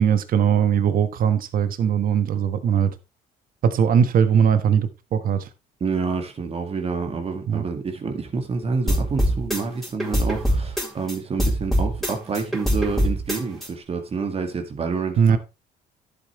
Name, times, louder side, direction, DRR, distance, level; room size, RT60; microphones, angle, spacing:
voice 1, 0.0-2.9 3.6-5.5 7.5-7.7 15.2-15.4, right 7 dB, 55° right, 1.4 m, -20 dB
voice 2, 5.8-15.4, right 4 dB, 35° right, 1.9 m, -28 dB
sound 1, 8.9-11.1 11.4-13.7, equal, ahead, 4.0 m, -23 dB
11.5 x 8.0 x 3.2 m
cardioid pair, 110°, 17 cm